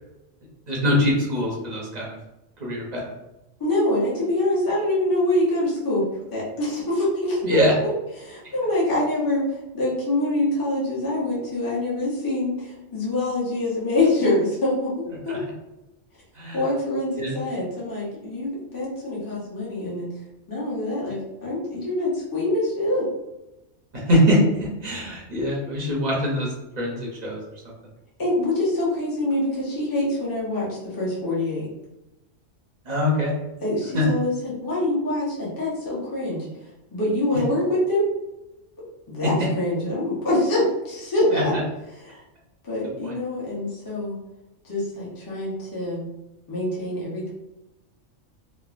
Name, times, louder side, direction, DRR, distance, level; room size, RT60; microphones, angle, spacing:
voice 1, 0.7-2.2 2.6-3.1 7.4-7.7 15.3-15.4 16.4-16.6 17.2-17.4 23.9-27.4 32.9-33.3 33.9-34.0 41.3-41.6 43.0-43.1, equal, 45° right, -3 dB, 0.6 m, -23 dB
voice 2, 3.6-6.0 6.3-15.4 16.5-20.1 20.5-23.1 28.2-31.7 33.6-38.1 39.1-41.5 41.9-42.2 42.6-44.1 44.6-46.1 46.5-47.3, left 1 dB, 20° left, -7 dB, 0.7 m, -25 dB
3.2 x 2.1 x 2.4 m, 0.97 s
omnidirectional pair, 1.3 m